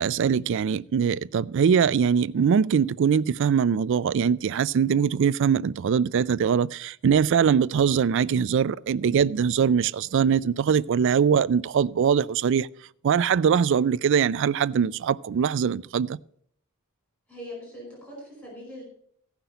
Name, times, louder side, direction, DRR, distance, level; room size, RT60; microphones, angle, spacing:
voice 1, 0.0-12.7 13.0-16.2, right 7 dB, 60° right, 0.3 m, -22 dB
voice 2, 17.3-18.8, left 1 dB, 10° left, 4.9 m, -41 dB
15.0 x 5.9 x 5.6 m
head